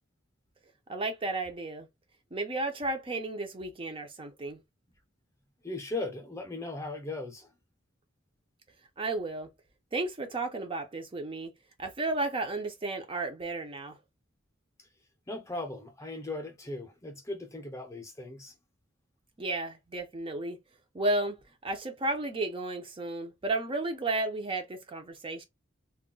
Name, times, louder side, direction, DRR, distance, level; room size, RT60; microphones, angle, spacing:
voice 1, 0.9-1.9 2.3-4.6 9.0-9.5 9.9-11.5 11.8-14.0 19.4-20.6 20.9-25.4, right 2 dB, 25° right, 0.5 m, -33 dB
voice 2, 5.6-7.5 14.8-14.9 15.3-18.5, left 2 dB, 15° left, 0.6 m, -38 dB
2.2 x 2.1 x 3.7 m
head